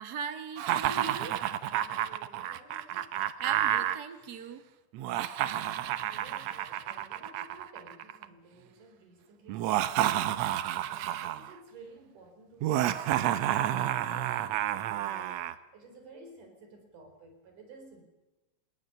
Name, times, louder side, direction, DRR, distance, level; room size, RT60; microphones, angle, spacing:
voice 1, 0.0-1.4 3.4-4.6, right 6 dB, 45° right, 9 dB, 1.3 m, -38 dB
Laughter, 0.6-4.0 4.9-8.3 9.5-11.5 12.6-15.6, right 12 dB, 80° right, 1.5 m, -30 dB
voice 2, 1.7-3.1 5.5-18.0, right 3 dB, 60° right, 6 dB, 5.3 m, -54 dB
30.0 x 18.0 x 6.8 m, 1.1 s
omnidirectional pair, 4.1 m